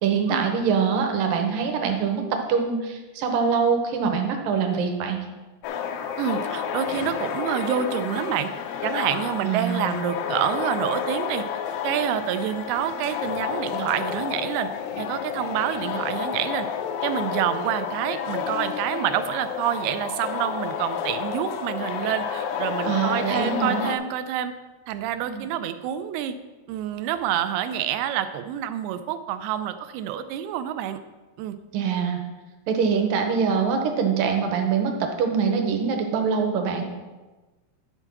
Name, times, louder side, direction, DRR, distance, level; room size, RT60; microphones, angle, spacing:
voice 1, 0.0-2.2 2.5-5.2 9.4-10.0 22.9-23.8 25.2-25.5 31.7-32.2 32.7-36.9, right 6 dB, 70° right, 4 dB, 2.4 m, -24 dB
sound 1, 5.6-24.0, left 7 dB, 80° left, 2.2 m, -30 dB
voice 2, 6.2-8.5 8.8-11.5 11.8-14.7 15.0-16.7 17.0-24.6 24.9-26.4 26.7-31.0 31.4-31.6, right 10 dB, 90° right, 10 dB, 2.6 m, -27 dB
11.5 x 4.4 x 5.9 m, 1.2 s
omnidirectional pair, 4.5 m